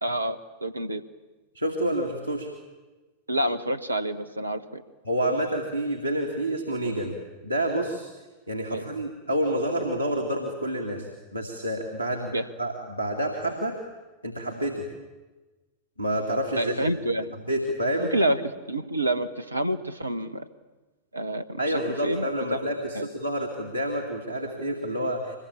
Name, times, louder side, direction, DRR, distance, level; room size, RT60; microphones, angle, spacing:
voice 1, 0.0-1.0 3.3-4.8 8.7-8.9 12.3-12.4 16.6-17.4 18.1-20.4 21.1-22.6 22.9-23.1, right 1 dB, 80° right, 12 dB, 1.0 m, -28 dB
voice 2, 1.5-2.5 5.1-7.2 7.4-8.1 8.5-13.8 14.2-14.9 16.0-16.8 17.5-18.1 21.6-25.4, right 1 dB, 90° left, 4 dB, 2.3 m, -28 dB
24.0 x 21.0 x 8.7 m, 1.2 s
figure-of-eight pair, 90°, 0 cm